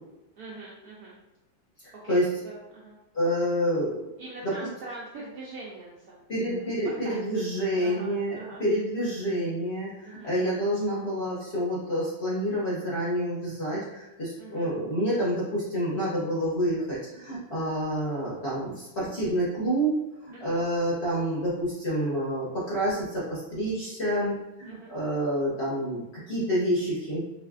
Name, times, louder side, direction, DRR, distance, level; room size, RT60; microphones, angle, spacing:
voice 1, 0.4-1.2 2.0-2.2 2.4-3.0 4.2-6.2 6.8-7.2 7.5-8.6 10.0-10.3 14.4-14.7 20.3-20.6 24.7-24.9, right 2 dB, 70° right, -5 dB, 0.9 m, -43 dB
voice 2, 3.1-4.1 4.4-4.7 6.3-27.2, equal, 45° left, -8 dB, 0.9 m, -28 dB
3.3 x 3.2 x 2.4 m, 0.98 s
omnidirectional pair, 2.1 m